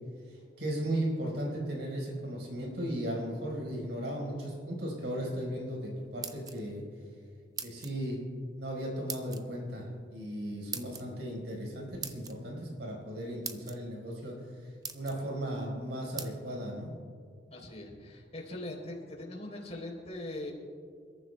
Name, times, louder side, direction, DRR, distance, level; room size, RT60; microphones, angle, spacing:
voice 1, 0.3-6.8 7.6-8.2 8.6-14.4 14.9-16.9, right 1 dB, 80° right, -2 dB, 4.5 m, -36 dB
sound 1, 6.0-6.8 7.6-8.0 9.1-9.4 10.7-11.0 12.0-12.3 13.1-13.2 13.4-13.8 14.4-14.5 14.8-15.2 16.2-16.3, right 6 dB, 20° right, 0.7 m, -40 dB
voice 2, 17.5-20.5, left 1 dB, 40° left, 0 dB, 3.6 m, -41 dB
28.0 x 14.0 x 2.2 m, 2.2 s
head